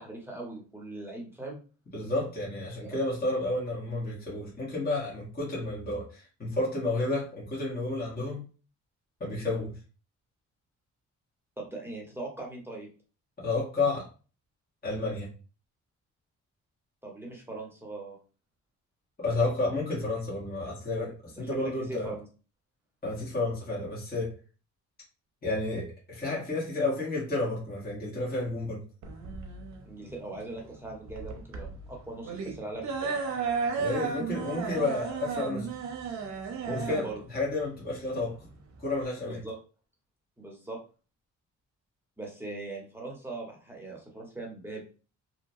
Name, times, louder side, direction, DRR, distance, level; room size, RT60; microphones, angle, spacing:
voice 1, 0.0-1.6 2.8-3.0 11.6-12.9 17.0-18.2 21.4-22.2 29.8-33.4 36.6-37.2 39.3-39.6 40.4-40.8 42.2-44.8, right 2 dB, 10° right, -1 dB, 1.0 m, -40 dB
voice 2, 1.9-8.5 9.2-9.7 13.4-14.1 14.8-15.3 19.2-22.1 23.0-24.3 25.4-28.8 33.8-35.7 36.7-38.5 38.8-39.4, left 2 dB, 30° left, -6 dB, 1.3 m, -31 dB
sound 1, 29.0-39.0, right 5 dB, 65° right, 0.7 m, -34 dB
2.8 x 2.2 x 2.7 m, 0.36 s
cardioid pair, 90°, 30 cm